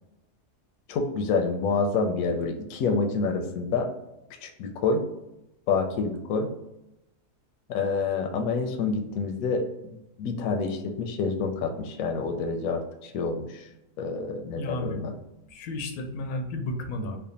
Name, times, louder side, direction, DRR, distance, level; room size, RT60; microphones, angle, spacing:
voice 1, 0.9-3.9 4.4-5.0 5.7-6.5 7.7-13.6 14.0-15.1, left 4 dB, 70° left, 4 dB, 0.9 m, -28 dB
voice 2, 14.5-15.0 15.5-17.2, left 2 dB, 85° left, 4 dB, 1.2 m, -33 dB
3.3 x 2.1 x 4.0 m, 0.90 s
omnidirectional pair, 1.8 m